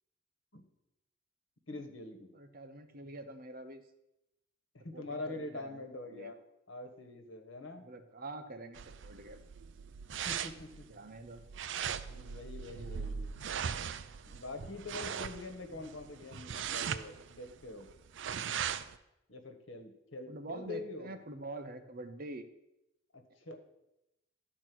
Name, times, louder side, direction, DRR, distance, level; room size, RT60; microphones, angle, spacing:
voice 1, 1.7-2.3 4.7-6.4 6.7-7.9 10.1-10.8 12.1-13.3 14.3-17.9 19.3-21.2 23.1-23.6, left 2 dB, 85° left, 6 dB, 1.3 m, -44 dB
voice 2, 2.3-3.8 4.9-6.3 7.8-9.4 10.9-11.4 20.3-22.5 23.3-23.6, right 2 dB, 50° right, 8 dB, 0.9 m, -46 dB
sound 1, 8.7-19.0, right 7 dB, 70° right, 0.5 m, -39 dB
12.0 x 4.3 x 6.0 m, 0.89 s
head